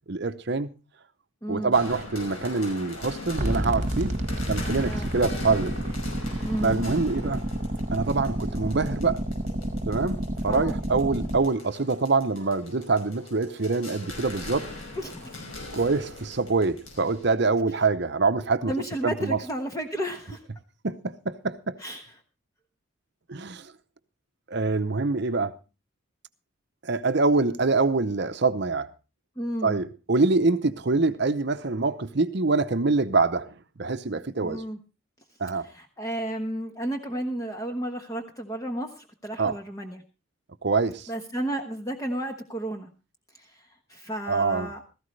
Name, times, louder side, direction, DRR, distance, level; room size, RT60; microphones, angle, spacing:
voice 1, 0.1-0.7 1.5-4.2 4.5-5.7 6.6-7.4 7.9-9.2 9.8-14.7 15.7-18.7 19.0-19.4 20.8-21.8 23.3-23.7 24.5-25.6 26.8-28.9 29.6-33.5 33.8-34.6 35.4-35.7 39.4-39.6 40.6-41.1 44.3-44.7, right 3 dB, 55° right, 0.8 m, -25 dB
voice 2, 1.4-1.7 4.8-5.1 6.5-6.8 10.5-10.8 15.0-15.4 18.6-20.4 21.8-22.1 29.4-29.8 34.4-34.8 35.6-40.0 41.1-42.9 43.4-43.5 43.9-44.8, right 1 dB, 15° left, 1.2 m, -32 dB
sound 1, 1.7-17.4, left 2 dB, 75° left, 5.7 m, -41 dB
sound 2, 3.4-11.4, right 1 dB, 35° right, 1.5 m, -30 dB
16.5 x 14.5 x 3.2 m
head